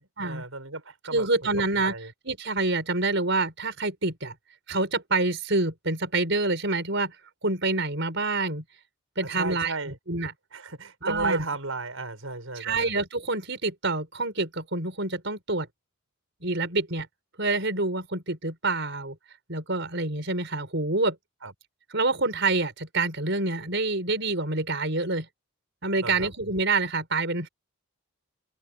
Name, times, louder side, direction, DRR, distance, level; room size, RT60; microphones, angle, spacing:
voice 1, 0.0-1.3 1.6-2.1 9.2-10.0 10.5-12.9 21.4-21.5 26.0-26.3, right 3 dB, 75° right, 6.0 m, -34 dB
voice 2, 1.1-1.9 2.3-4.3 4.7-7.2 7.4-8.6 9.2-9.7 10.1-10.3 11.0-11.4 12.6-15.7 16.4-17.1 17.4-19.2 19.5-21.2 21.9-25.3 25.8-27.5, right 3 dB, 55° right, 5.3 m, -27 dB
head